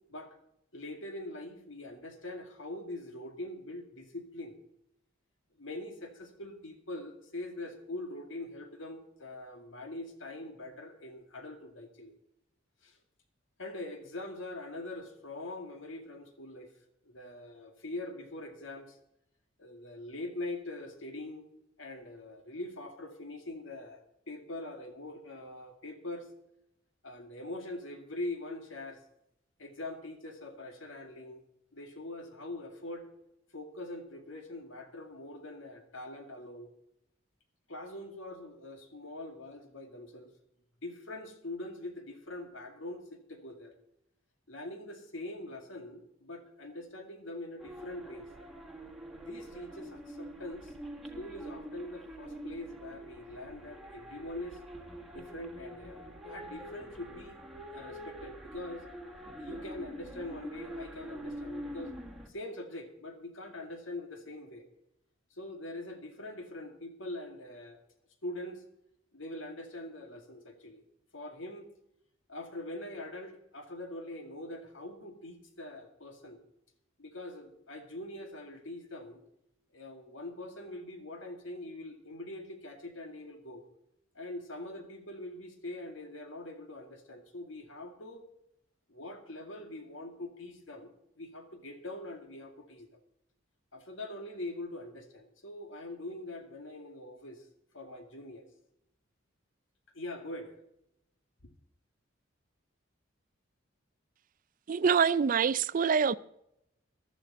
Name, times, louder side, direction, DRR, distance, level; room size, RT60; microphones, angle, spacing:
voice 1, 0.7-4.6 5.6-12.1 12.8-13.0 13.6-16.7 17.0-19.0 19.6-21.5 21.8-26.3 27.0-29.0 29.6-31.4 31.7-33.1 33.5-36.7 37.7-40.3 40.8-43.7 44.5-48.3 49.2-50.7 51.2-54.6 55.1-57.4 57.7-58.9 59.4-62.0 62.3-64.7 65.3-67.8 68.2-68.6 69.1-70.8 71.1-71.7 72.3-76.4 77.0-79.2 79.7-83.6 84.1-88.3 88.9-90.9 91.2-93.0 93.7-97.5 97.7-98.5 99.9-100.6 101.4-101.5, left 1 dB, 80° left, 2.1 m, -43 dB
sound 1, 47.6-62.3, equal, ahead, 1.5 m, -45 dB
voice 2, 104.7-106.1, right 6 dB, 45° right, 0.4 m, -25 dB
15.0 x 12.5 x 4.1 m
head